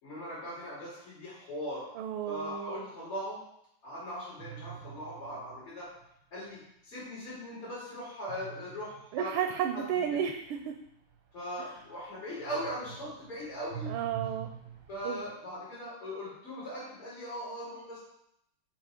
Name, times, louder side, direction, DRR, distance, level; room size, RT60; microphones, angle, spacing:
voice 1, 0.0-1.9 2.2-3.4 3.8-5.9 6.3-9.3 9.7-10.2 11.3-13.9 14.9-18.0, equal, 75° left, -12 dB, 4.0 m, -40 dB
voice 2, 2.0-2.8 9.1-10.7 13.9-14.5 15.0-15.2, right 9 dB, 80° right, 5 dB, 1.4 m, -32 dB
sound 1, 4.4-6.0 8.3-12.1 12.4-15.3, right 9 dB, 60° right, 0.9 m, -46 dB
8.4 x 3.1 x 4.9 m, 0.76 s
omnidirectional pair, 2.4 m